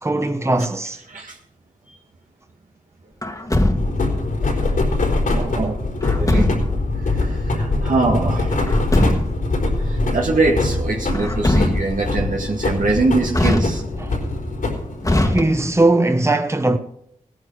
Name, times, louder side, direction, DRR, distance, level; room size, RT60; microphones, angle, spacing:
voice 1, 0.0-1.0 14.0-14.2 15.2-16.8, right 2 dB, 20° right, 1.1 m, -19 dB
voice 2, 1.1-1.4 1.9-2.0 4.4-5.8 6.1-6.5 7.0-8.6 9.7-13.8 15.1-15.4, right 3 dB, 80° right, 1.8 m, -23 dB
Truck, 3.2-4.2 6.0-6.9 8.5-9.5 11.1-12.1 13.3-14.1 15.0-15.9, left 1 dB, 25° left, 1.6 m, -21 dB
sound 1, 3.8-15.6, left 2 dB, 85° left, 4.5 m, -23 dB
18.0 x 10.5 x 4.8 m
wide cardioid pair, 65°, 13 cm